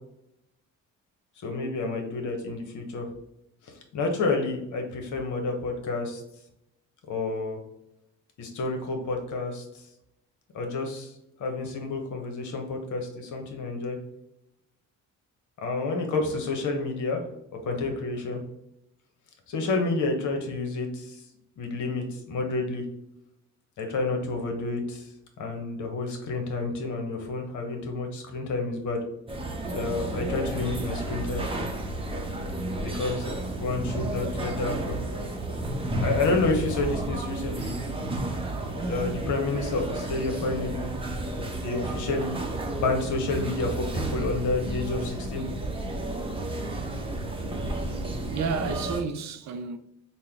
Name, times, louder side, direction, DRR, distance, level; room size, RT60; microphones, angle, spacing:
voice 1, 1.4-3.1 3.9-6.2 7.1-7.6 8.4-9.8 10.5-11.1 11.4-14.0 15.6-17.2 17.6-18.4 19.5-21.2 21.6-22.8 23.8-25.1 25.4-29.0 29.7-31.5 32.8-35.0 36.0-37.7 38.9-41.0 41.5-42.4 42.7-45.4, left 3 dB, 75° left, 1.0 m, -29 dB
sound 1, 29.3-49.0, right 2 dB, 20° right, 0.7 m, -32 dB
voice 2, 48.2-49.8, right 5 dB, 65° right, 0.5 m, -31 dB
4.1 x 2.2 x 3.4 m
cardioid pair, 90°, 30 cm